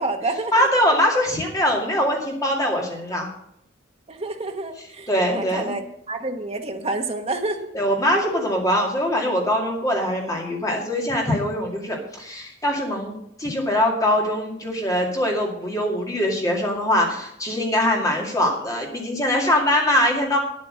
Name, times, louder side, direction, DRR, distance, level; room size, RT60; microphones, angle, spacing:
voice 1, 0.0-0.7 4.1-5.1 5.3-5.8 6.1-7.6, right 2 dB, 30° right, 4 dB, 1.2 m, -28 dB
voice 2, 0.5-3.3 5.1-5.7 7.7-13.1 13.4-20.4, left 1 dB, 20° left, -1 dB, 2.2 m, -22 dB
9.8 x 8.5 x 6.2 m, 0.74 s
head